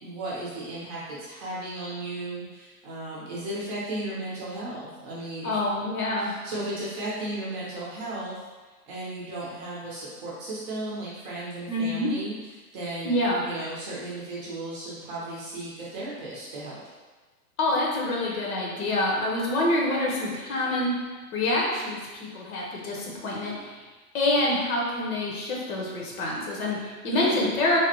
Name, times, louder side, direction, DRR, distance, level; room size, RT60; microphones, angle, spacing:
voice 1, 0.0-5.5 6.2-8.3 8.6-12.4 12.7-16.8 27.1-27.4, right 2 dB, 30° right, -7 dB, 0.6 m, -35 dB
voice 2, 5.4-6.3 11.7-12.1 13.0-13.4 17.6-20.9 21.3-23.7 24.1-27.8, left 1 dB, 65° left, -2 dB, 1.0 m, -26 dB
3.4 x 2.1 x 2.8 m, 1.3 s
hypercardioid pair, 150°, 47 cm